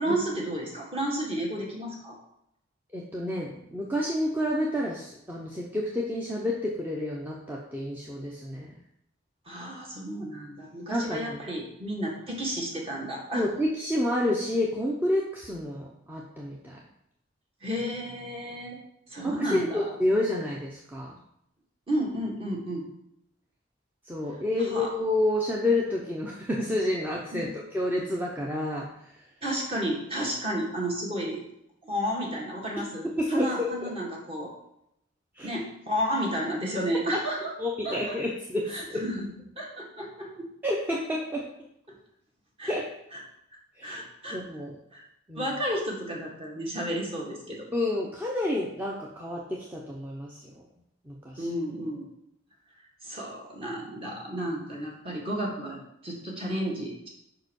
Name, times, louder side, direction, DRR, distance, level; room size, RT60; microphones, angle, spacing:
voice 1, 0.0-2.2 9.5-13.5 17.6-18.8 19.1-19.9 21.9-22.9 24.6-24.9 27.3-27.5 29.4-31.4 31.8-34.5 35.4-37.5 37.8-38.2 38.7-40.5 42.6-42.7 43.1-43.2 43.8-44.4 44.9-45.0 45.3-47.7 51.4-52.1 53.0-55.8 56.0-57.1, equal, 30° right, -2 dB, 1.8 m, -32 dB
voice 2, 2.9-8.7 10.9-11.4 13.3-16.8 19.2-21.1 24.1-29.1 33.2-33.9 35.4-35.5 37.6-39.0 40.6-41.5 42.7-42.9 43.8-44.0 44.3-44.8 45.3-45.5 47.7-50.6 51.1-51.5, left 1 dB, 10° right, -3 dB, 0.8 m, -29 dB
5.2 x 4.8 x 6.3 m, 0.79 s
head